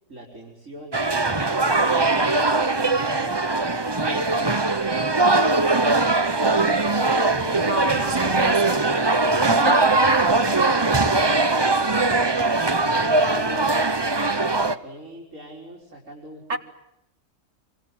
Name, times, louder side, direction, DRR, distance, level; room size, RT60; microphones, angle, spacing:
voice 1, 0.1-3.7 4.0-5.0 6.3-7.7 8.1-8.4 10.1-16.6, equal, 85° right, 5.1 m, -41 dB
sound 1, 0.9-14.8, right 3 dB, 20° right, 1.0 m, -21 dB
voice 2, 6.4-7.2 7.5-8.8 9.5-9.9 16.5-16.6, right 2 dB, 65° right, 2.2 m, -29 dB
26.5 x 25.5 x 7.8 m
omnidirectional pair, 1.3 m